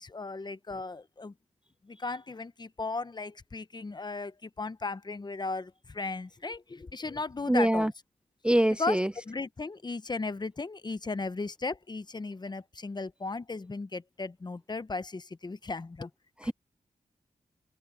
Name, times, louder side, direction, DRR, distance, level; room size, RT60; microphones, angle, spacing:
voice 1, 0.0-1.3 1.8-7.9 8.8-9.0 9.2-16.1 16.4-16.5, left 3 dB, 35° left, 0.8 m, -36 dB
voice 2, 7.5-7.9 8.4-9.1, right 1 dB, 10° right, 0.6 m, -24 dB
cardioid pair, 65°, 13 cm